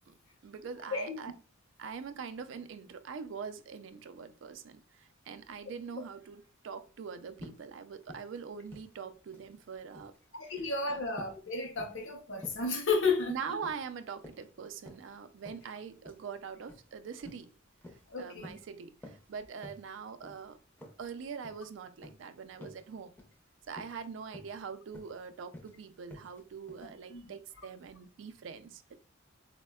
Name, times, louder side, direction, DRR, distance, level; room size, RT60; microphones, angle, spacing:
voice 1, 0.4-1.3 1.8-10.1 10.9-11.0 13.3-17.5 18.2-20.6 21.0-23.1 23.7-28.8, right 6 dB, 65° right, 0.3 m, -43 dB
sound 1, 7.4-7.7 8.0-8.4 8.7-9.5 9.8-10.2 10.5-10.8 11.2-11.4 11.8-12.1 12.4-12.7 13.0-13.3 13.6-13.9 14.2-15.1 15.5-15.7 16.1-16.3 16.7-16.9 17.2-17.5 17.8-18.1 18.4-18.7 19.0-19.3 19.6-19.9 20.2-20.4 20.8-21.1 21.4-21.7 22.0-22.2 22.6-22.9 23.2-23.4 23.7-24.1 24.3-24.6 24.9-25.2 25.5-25.7 26.1-26.4 26.7-26.9, left 1 dB, 10° left, 0.5 m, -50 dB
voice 2, 10.4-13.6 18.1-18.5 26.8-27.3, left 4 dB, 65° left, 0.7 m, -33 dB
4.2 x 2.1 x 2.2 m
head